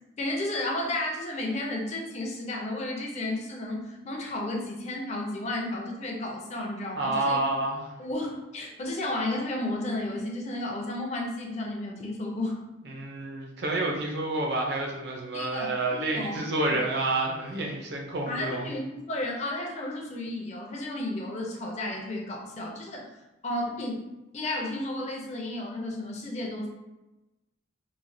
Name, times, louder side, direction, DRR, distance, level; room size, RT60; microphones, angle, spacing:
voice 1, 0.2-7.4 8.0-12.6 15.3-16.8 18.3-23.1 23.4-24.0 24.3-26.7, left 1 dB, 35° left, 0 dB, 0.4 m, -33 dB
voice 2, 7.0-7.8 12.9-18.7, right 2 dB, 60° right, 0 dB, 0.5 m, -29 dB
3.1 x 2.1 x 2.6 m, 1.0 s
head